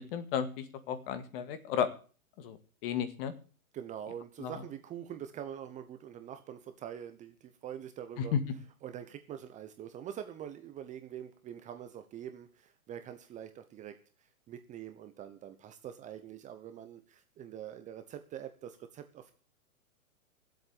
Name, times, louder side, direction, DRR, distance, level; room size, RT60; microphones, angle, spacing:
voice 1, 0.0-1.9 2.4-3.3 4.4-4.5 8.2-8.4, left 8 dB, 40° left, 11 dB, 2.0 m, -33 dB
voice 2, 3.7-8.3 8.8-14.0 14.5-19.3, right 9 dB, 15° right, 8 dB, 0.9 m, -44 dB
15.5 x 8.0 x 8.7 m, 0.39 s
hypercardioid pair, 135°, 43 cm